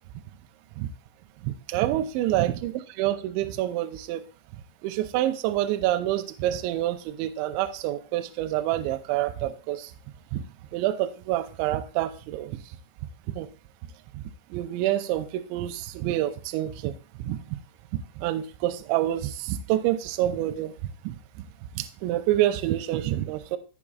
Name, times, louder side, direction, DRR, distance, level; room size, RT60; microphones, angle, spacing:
voice 1, 1.4-4.2 4.8-9.9 10.3-10.4 10.7-12.6 13.4-13.5 14.1-14.2 14.5-16.9 17.2-17.4 18.2-20.7 21.1-21.2 21.8-23.6, right 13 dB, 85° right, 9 dB, 2.7 m, -27 dB
15.5 x 6.0 x 2.4 m, 0.35 s
omnidirectional pair, 5.5 m